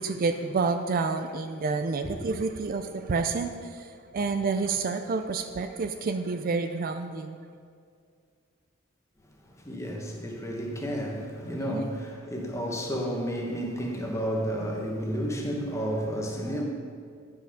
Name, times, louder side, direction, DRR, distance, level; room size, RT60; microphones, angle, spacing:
voice 1, 0.0-7.5 11.4-11.9, right 4 dB, 45° right, 8 dB, 0.4 m, -29 dB
voice 2, 9.5-16.6, equal, 15° left, 0 dB, 1.2 m, -31 dB
9.8 x 5.8 x 5.0 m, 2.2 s
head